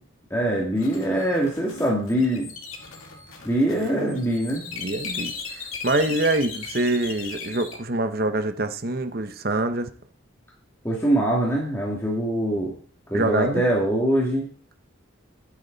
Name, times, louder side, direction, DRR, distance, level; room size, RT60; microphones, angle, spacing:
voice 1, 0.3-2.5 3.4-4.6 10.8-12.7 13.1-14.5, right 1 dB, 10° left, -3 dB, 2.5 m, -23 dB
sound 1, 0.8-7.7, left 5 dB, 85° left, 2.6 m, -37 dB
voice 2, 3.7-4.2 4.7-9.9 13.1-13.6, right 2 dB, 45° right, 9 dB, 1.0 m, -25 dB
11.5 x 9.9 x 4.1 m, 0.43 s
head